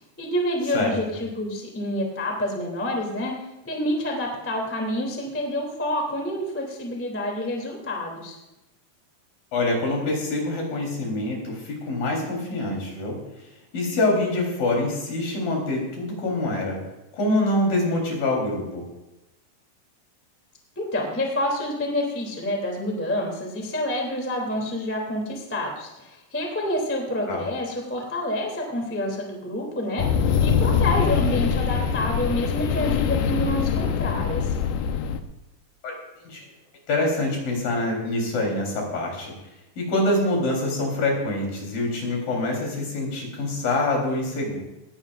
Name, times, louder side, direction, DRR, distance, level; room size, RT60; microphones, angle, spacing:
voice 1, 0.2-3.3 3.6-8.4 20.8-34.5, left 1 dB, 5° left, 0 dB, 2.0 m, -28 dB
voice 2, 9.5-13.2 13.7-16.8 17.1-18.9 27.3-27.4 35.8-35.9 36.2-36.5 36.9-39.3 39.8-44.6, left 2 dB, 60° left, -1 dB, 5.4 m, -25 dB
sound 1, 30.0-35.2, left 7 dB, 75° left, 2.0 m, -23 dB
19.0 x 16.5 x 2.6 m, 0.95 s
omnidirectional pair, 4.7 m